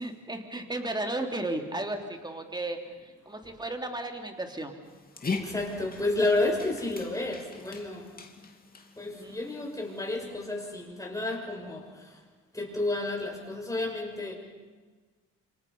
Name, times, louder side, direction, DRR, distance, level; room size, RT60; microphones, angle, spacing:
voice 1, 0.0-4.7 9.0-9.5, right 2 dB, 15° right, 4 dB, 3.2 m, -35 dB
Dog, 4.8-10.2, left 4 dB, 30° left, 2.7 m, -40 dB
voice 2, 5.3-8.2 9.0-12.2 12.5-14.3, left 2 dB, 10° left, 0 dB, 6.6 m, -31 dB
27.5 x 26.0 x 5.5 m, 1.4 s
cardioid pair, 90°, 30 cm